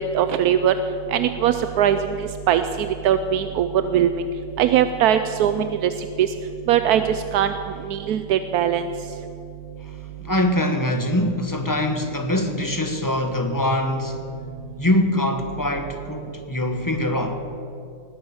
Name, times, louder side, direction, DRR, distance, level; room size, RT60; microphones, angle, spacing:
voice 1, 0.1-0.7 1.1-4.2 4.6-5.9 6.2-6.3 6.7-7.0 7.3-7.5 7.9-8.8, right 10 dB, 85° right, 10 dB, 1.1 m, -20 dB
voice 2, 10.2-14.2 14.8-17.4, left 1 dB, 15° left, 5 dB, 1.0 m, -23 dB
19.0 x 10.5 x 7.2 m, 2.7 s
omnidirectional pair, 1.6 m